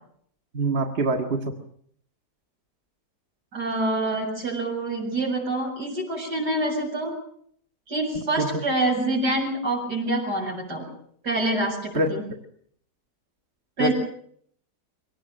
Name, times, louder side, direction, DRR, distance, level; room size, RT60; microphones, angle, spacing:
voice 1, 0.5-1.6 8.4-8.5 11.9-12.1 13.8-13.9, right 2 dB, 35° right, 4 dB, 2.0 m, -24 dB
voice 2, 3.5-7.1 7.9-10.8 11.2-12.2 13.8-13.9, right 2 dB, 75° right, 0 dB, 8.5 m, -26 dB
24.0 x 19.0 x 7.7 m, 0.65 s
omnidirectional pair, 1.8 m